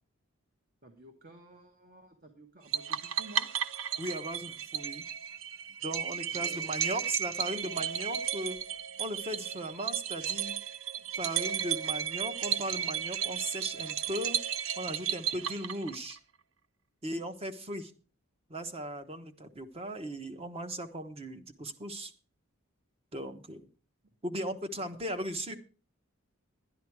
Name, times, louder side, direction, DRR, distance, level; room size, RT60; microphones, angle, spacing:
voice 1, 0.8-3.5 6.3-7.0 24.9-25.0, right 2 dB, 45° right, 5 dB, 1.5 m, -53 dB
sound 1, 2.7-16.2, right 9 dB, 70° right, 0.6 m, -34 dB
voice 2, 4.0-5.0 5.8-8.6 9.0-10.5 11.2-14.4 14.8-16.2 17.0-17.9 18.5-22.1 23.1-23.7 24.2-25.6, right 1 dB, 30° right, 8 dB, 1.1 m, -37 dB
11.5 x 10.5 x 4.7 m, 0.39 s
head